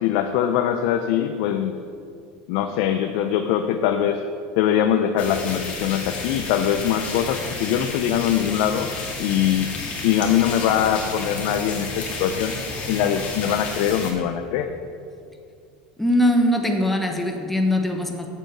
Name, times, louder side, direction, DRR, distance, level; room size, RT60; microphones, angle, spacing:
voice 1, 0.0-1.8 2.5-4.2 4.6-8.9 9.2-12.6 12.9-14.7, left 10 dB, 70° left, 6 dB, 0.6 m, -22 dB
sound 1, 5.2-14.1, left 3 dB, 40° left, 2.2 m, -31 dB
voice 2, 16.0-18.3, left 1 dB, 5° left, 3 dB, 1.2 m, -21 dB
7.5 x 7.1 x 6.8 m, 2.4 s
supercardioid pair, 110°, 3 cm